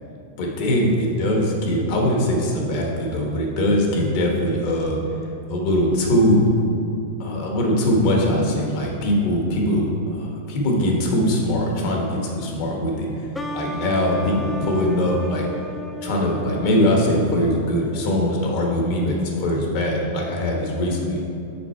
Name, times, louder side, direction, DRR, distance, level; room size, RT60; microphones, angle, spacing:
voice 1, 0.4-5.0 5.5-6.5 7.2-15.5 16.0-21.2, left 1 dB, 55° left, -1 dB, 1.3 m, -21 dB
sound 1, 13.3-18.8, left 1 dB, 10° left, 0.4 m, -35 dB
5.9 x 4.1 x 4.5 m, 2.7 s
hypercardioid pair, 130°, 0 cm